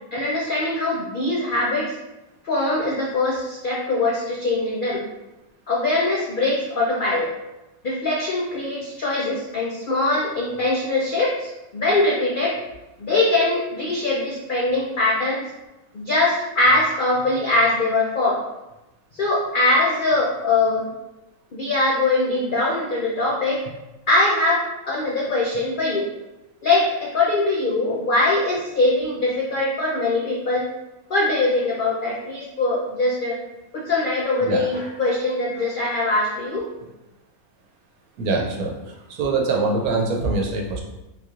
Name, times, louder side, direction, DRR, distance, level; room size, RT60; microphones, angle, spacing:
voice 1, 0.1-1.9 2.4-5.0 5.7-7.3 7.8-12.6 13.0-15.4 15.9-18.4 19.1-20.9 21.5-23.6 24.1-26.1 26.6-30.6 31.1-33.4 33.7-36.6, left 2 dB, 75° left, -4 dB, 0.4 m, -22 dB
voice 2, 38.2-40.8, right 3 dB, 80° right, 0 dB, 1.1 m, -24 dB
3.6 x 2.9 x 2.4 m, 0.98 s
omnidirectional pair, 1.5 m